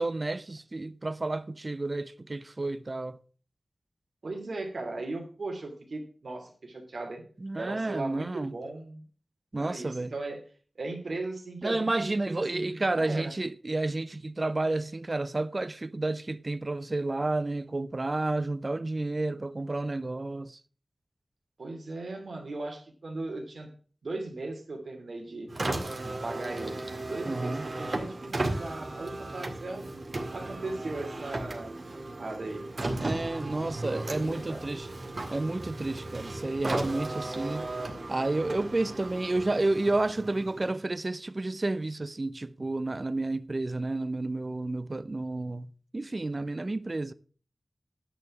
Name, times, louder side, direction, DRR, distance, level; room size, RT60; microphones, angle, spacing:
voice 1, 0.0-3.2 7.4-8.5 9.5-10.1 11.6-20.6 27.3-27.7 33.0-34.9 35.3-37.7 38.1-45.7 45.9-47.1, right 2 dB, 40° right, 0.6 m, -31 dB
voice 2, 4.2-7.2 7.5-9.0 9.5-10.4 10.8-13.3 21.6-23.7 24.0-25.5 26.0-29.8 30.3-33.2 33.6-34.7, right 2 dB, 75° right, 2.8 m, -38 dB
Car, 25.5-40.9, right 2 dB, 60° right, 1.9 m, -36 dB
10.0 x 6.9 x 6.1 m
wide cardioid pair, 55°, 0 cm